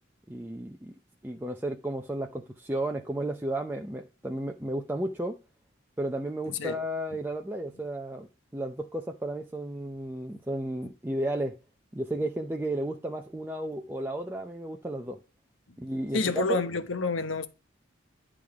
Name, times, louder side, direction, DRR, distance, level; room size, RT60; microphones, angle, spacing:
voice 1, 0.3-5.4 6.0-8.3 8.5-11.6 11.9-15.2 15.8-16.6, right 1 dB, 10° right, 0.5 m, -33 dB
voice 2, 16.1-17.5, left 3 dB, 85° left, 1.0 m, -28 dB
10.5 x 3.7 x 4.7 m
head